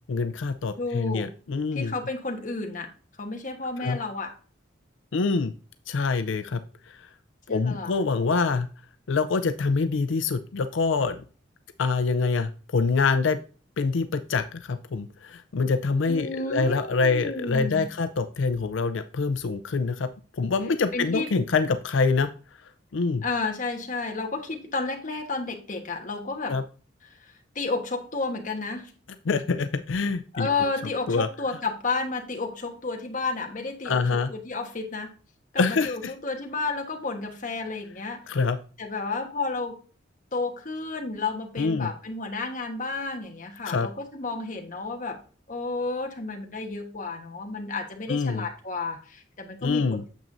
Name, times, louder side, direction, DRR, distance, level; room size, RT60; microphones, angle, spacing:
voice 1, 0.1-1.9 3.8-4.0 5.1-5.5 5.9-6.6 6.9-7.0 7.5-8.7 9.1-11.2 11.8-13.4 13.8-22.3 22.9-23.2 26.5-26.6 29.3-30.5 31.1-31.3 33.8-34.3 35.6-35.9 38.3-38.6 41.6-41.9 43.7-43.9 48.1-48.5 49.6-50.0, left 4 dB, 85° left, 9 dB, 0.5 m, -25 dB
voice 2, 0.8-1.3 1.7-2.9 3.2-4.4 7.5-8.0 16.1-17.8 20.9-21.3 23.2-26.6 27.0-28.9 30.3-35.1 35.5-38.2 38.8-39.8 40.3-45.2 45.5-50.1, left 3 dB, 45° left, 3 dB, 1.3 m, -31 dB
9.0 x 7.0 x 2.6 m, 0.38 s
head